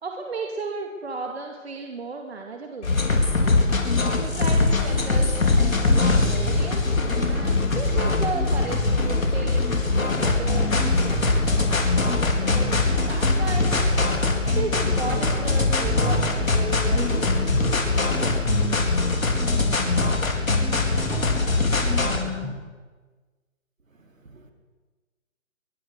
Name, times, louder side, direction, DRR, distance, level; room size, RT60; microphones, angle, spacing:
voice 1, 0.0-2.9 4.2-5.4 5.8-7.0 7.3-9.7 10.2-11.3 12.4-13.8 14.5-17.4, right 4 dB, 50° right, 3 dB, 2.5 m, -34 dB
sound 1, 2.8-19.0, left 2 dB, 60° left, 6.0 m, -31 dB
sound 2, 2.9-22.2, left 3 dB, 80° left, 4.6 m, -23 dB
sound 3, 5.5-22.5, left 2 dB, ahead, 1.6 m, -32 dB
voice 2, 23.9-24.5, right 2 dB, 75° right, 3 dB, 4.8 m, -52 dB
23.0 x 22.0 x 6.5 m, 1.3 s
figure-of-eight pair, 160°, 40 cm